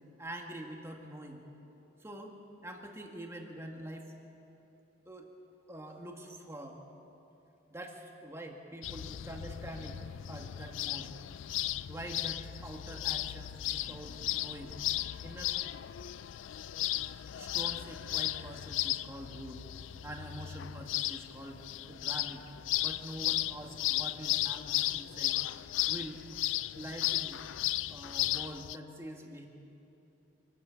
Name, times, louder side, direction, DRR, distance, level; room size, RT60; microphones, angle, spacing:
voice 1, 0.2-1.4 2.0-2.4 2.6-4.1 5.1-5.3 5.7-6.8 7.7-10.0 10.3-11.1 11.9-14.8 15.2-15.6 17.4-19.6 20.0-21.6 21.9-22.5 22.8-25.4 25.9-26.3 26.8-27.4 27.9-29.5, right 1 dB, 15° right, 2 dB, 1.7 m, -45 dB
sound 1, 8.8-28.8, left 14 dB, 85° left, 0.4 m, -35 dB
24.5 x 12.5 x 8.4 m, 2.9 s
head